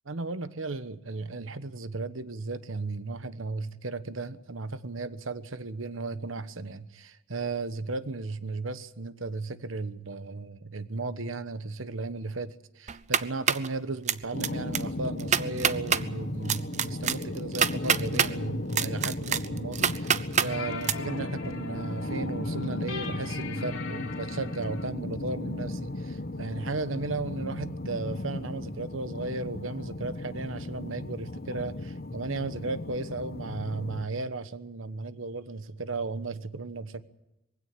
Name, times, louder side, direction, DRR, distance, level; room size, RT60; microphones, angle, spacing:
voice 1, 0.1-37.0, right 3 dB, 85° right, 1.2 m, -35 dB
sound 1, 12.9-13.7 14.1-14.5 14.7-14.8 15.2-16.0 16.5-18.3 18.7-20.5 20.8-20.9, right 8 dB, 35° right, 0.7 m, -25 dB
sound 2, 14.3-34.1, left 2 dB, 50° left, 1.0 m, -36 dB
sound 3, 19.9-24.9, left 5 dB, 75° left, 3.6 m, -42 dB
22.5 x 16.5 x 8.9 m
head